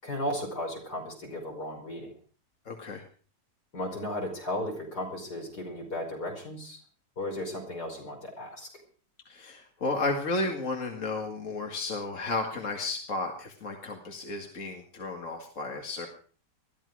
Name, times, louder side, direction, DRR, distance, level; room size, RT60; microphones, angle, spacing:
voice 1, 0.0-2.1 3.7-6.8 7.2-8.7, left 1 dB, 70° left, 1 dB, 5.9 m, -35 dB
voice 2, 2.7-3.0 9.3-16.1, left 3 dB, 50° left, 2 dB, 2.3 m, -33 dB
21.0 x 14.0 x 4.8 m, 0.42 s
omnidirectional pair, 1.8 m